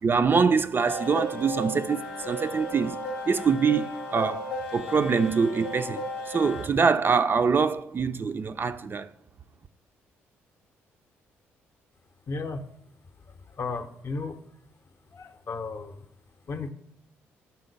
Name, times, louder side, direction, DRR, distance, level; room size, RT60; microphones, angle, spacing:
voice 1, 0.0-3.9 4.1-4.5 4.7-9.1, right 5 dB, 35° right, 0.3 m, -24 dB
sound 1, 0.9-6.7, equal, 85° left, 0.6 m, -35 dB
voice 2, 12.3-12.6 13.6-14.3 15.1-16.0 16.5-16.7, left 4 dB, 40° left, 0.6 m, -34 dB
5.7 x 3.8 x 5.2 m
hypercardioid pair, 45°, 6 cm